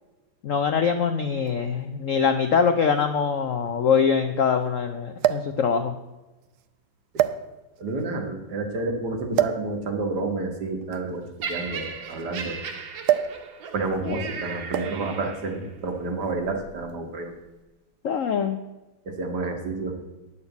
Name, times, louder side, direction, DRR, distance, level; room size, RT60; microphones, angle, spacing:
voice 1, 0.4-5.9 14.1-14.2 18.0-18.6, left 6 dB, 90° left, 8 dB, 0.7 m, -23 dB
sound 1, 1.5-1.6 2.7-2.8 3.0-3.1 5.2-5.6 6.4-6.6 7.1-7.8 9.3-9.7 10.8-12.4 13.0-13.4 13.7-14.0 14.7-15.1 16.1-16.3, right 11 dB, 85° right, 1.5 m, -25 dB
voice 2, 7.8-11.2 11.5-12.6 13.7-17.3 19.1-20.0, right 3 dB, 55° right, 3 dB, 2.0 m, -29 dB
Laughter, 11.4-15.7 16.5-16.6, right 5 dB, 70° right, 1.8 m, -36 dB
9.9 x 6.8 x 8.0 m, 1.1 s
omnidirectional pair, 2.2 m